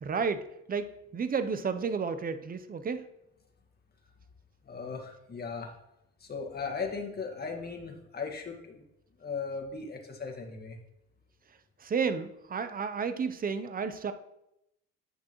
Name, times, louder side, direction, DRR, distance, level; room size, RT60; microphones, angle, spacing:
voice 1, 0.0-3.0 11.8-14.1, right 5 dB, 25° right, 11 dB, 0.7 m, -32 dB
voice 2, 4.7-5.7 6.2-8.8 9.2-10.8, left 5 dB, 30° left, 2 dB, 1.7 m, -37 dB
9.1 x 6.2 x 3.1 m, 0.84 s
supercardioid pair, 85°, 32 cm